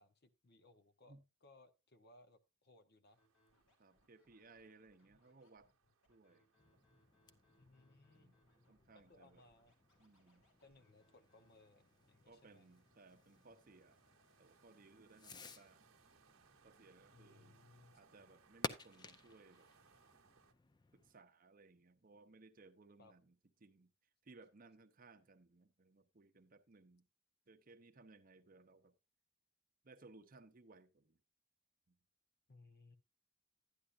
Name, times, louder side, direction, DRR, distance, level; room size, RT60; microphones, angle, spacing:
voice 1, 0.0-3.2 5.1-5.2 7.6-8.3 8.9-9.7 10.6-12.7 17.1-18.0 23.0-23.1 32.5-33.0, left 2 dB, 50° left, 0.9 m, -65 dB
sound 1, 3.1-20.5, right 5 dB, 85° right, 0.9 m, -73 dB
Scratching (performance technique), 3.2-11.7, left 1 dB, 70° left, 3.0 m, -77 dB
voice 2, 3.8-5.7 6.1-6.5 8.1-8.4 8.7-9.4 10.0-10.5 12.3-14.0 14.4-15.9 16.6-17.6 18.0-19.7 20.9-23.4 23.6-23.9 24.2-27.1 27.5-29.0 29.8-31.2 31.9-32.0, right 3 dB, 40° right, 0.7 m, -63 dB
Fireworks, 6.6-21.2, left 3 dB, 20° left, 0.5 m, -54 dB
11.5 x 9.9 x 2.5 m
head